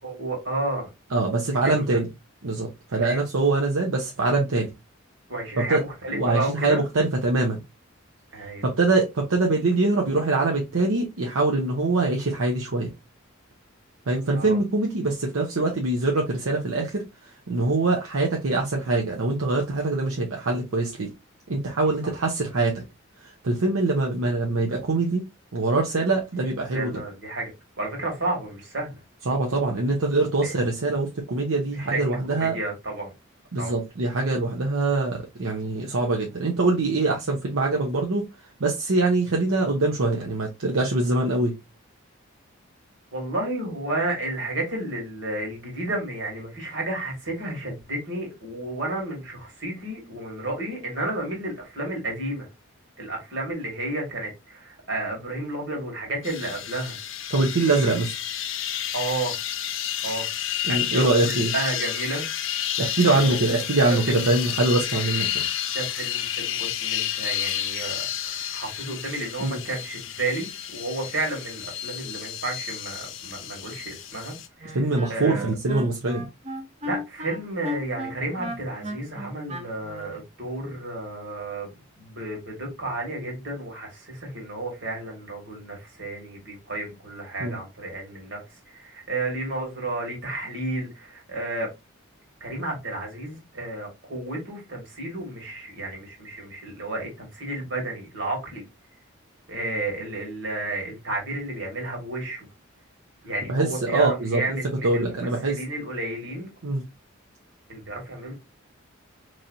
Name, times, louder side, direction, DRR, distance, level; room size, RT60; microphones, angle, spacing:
voice 1, 0.0-0.9 1.6-2.0 2.9-3.2 5.3-6.8 8.3-8.7 14.3-14.6 22.0-22.1 26.7-27.5 27.8-29.0 30.4-30.5 31.7-32.0 32.3-33.1 33.6-33.8 43.1-52.5 53.0-57.0 58.9-59.3 60.0-60.3 60.7-62.3 63.1-63.3 63.5-63.6 64.1-64.3 65.7-74.8 75.1-75.5 76.8-88.4 88.7-91.7 92.4-98.6 99.5-102.5 103.2-106.5 107.7-108.3, right 2 dB, 65° right, 1.9 m, -32 dB
voice 2, 1.1-2.1 2.4-4.7 5.6-5.8 6.1-7.6 8.6-12.9 14.1-21.1 21.5-22.8 23.2-25.2 25.5-27.0 29.3-32.6 33.5-38.2 38.6-41.6 57.3-58.1 60.6-61.5 62.8-65.4 69.4-69.6 74.7-76.3 87.4-87.6 103.5-104.6 104.8-105.6 106.6-106.8, right 2 dB, 85° right, 0.8 m, -24 dB
sound 1, 56.2-74.5, left 11 dB, 65° left, 0.5 m, -31 dB
Wind instrument woodwind instrument, 74.6-80.2, left 1 dB, 30° right, 0.7 m, -35 dB
4.1 x 3.2 x 2.6 m
head